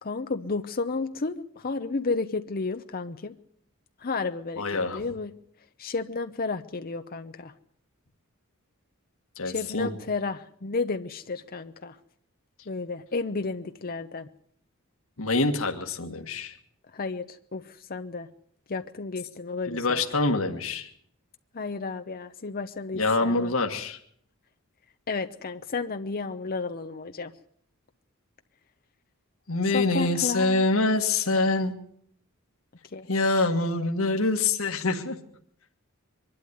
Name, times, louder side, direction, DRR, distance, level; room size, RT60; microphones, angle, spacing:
voice 1, 0.0-3.3 4.0-4.6 4.9-5.3 5.8-7.5 9.4-12.0 12.7-14.3 16.9-18.3 18.7-20.0 21.5-23.5 25.1-27.3 29.7-30.6 31.4-31.5 32.9-33.1, left 4 dB, 45° left, 8 dB, 0.7 m, -32 dB
voice 2, 4.6-5.0 9.3-9.9 15.2-16.6 19.7-20.9 22.9-24.0 29.5-31.7 33.1-35.2, left 3 dB, 70° left, 3 dB, 1.8 m, -25 dB
24.0 x 11.5 x 9.5 m, 0.66 s
head